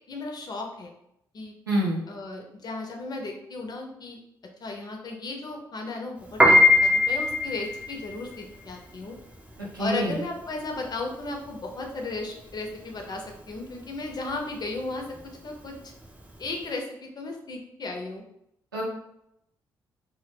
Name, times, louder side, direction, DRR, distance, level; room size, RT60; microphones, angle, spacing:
voice 1, 0.1-0.9 1.3-1.5 2.1-4.2 4.6-9.2 9.8-15.8 16.4-18.2, left 2 dB, 40° left, 2 dB, 0.6 m, -35 dB
voice 2, 1.7-2.0 9.7-10.2 18.7-18.8, right 1 dB, 90° right, -5 dB, 0.5 m, -26 dB
Piano, 6.2-16.6, left 2 dB, 10° right, 0.5 m, -24 dB
2.1 x 2.1 x 3.3 m, 0.78 s
figure-of-eight pair, 40°, 11 cm